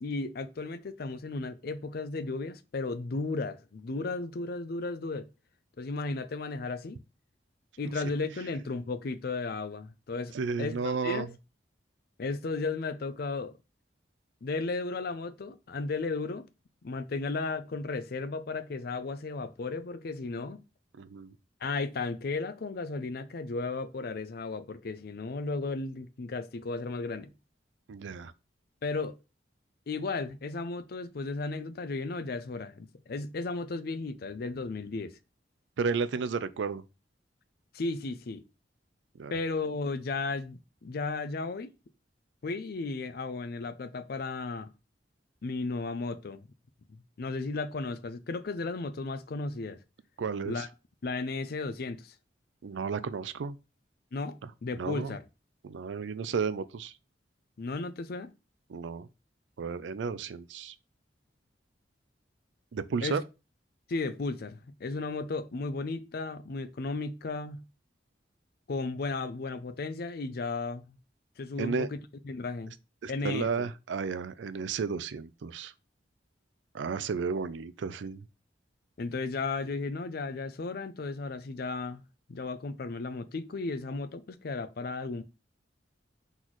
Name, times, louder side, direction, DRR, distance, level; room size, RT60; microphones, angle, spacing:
voice 1, 0.0-5.3 5.8-7.0 7.8-11.3 12.2-13.6 14.4-16.5 16.8-20.6 21.6-27.3 28.8-29.2 29.9-35.2 37.7-38.4 39.3-41.7 42.4-44.7 45.4-46.4 47.2-49.8 50.5-50.7 51.0-52.1 54.1-55.2 57.6-58.3 63.0-63.2 63.9-67.6 68.7-71.0 71.4-72.0 72.2-72.7 73.1-73.7 79.0-82.0 82.3-85.2, left 3 dB, 55° left, 0.5 m, -34 dB
voice 2, 10.3-11.3 21.0-21.3 27.9-28.3 35.8-36.8 39.2-39.4 50.2-50.7 52.6-53.6 54.8-55.2 55.6-56.9 58.7-59.1 59.6-60.7 62.7-63.2 71.6-71.9 73.0-75.7 76.7-78.3, right 5 dB, 85° right, 0.4 m, -33 dB
4.0 x 4.0 x 3.0 m
head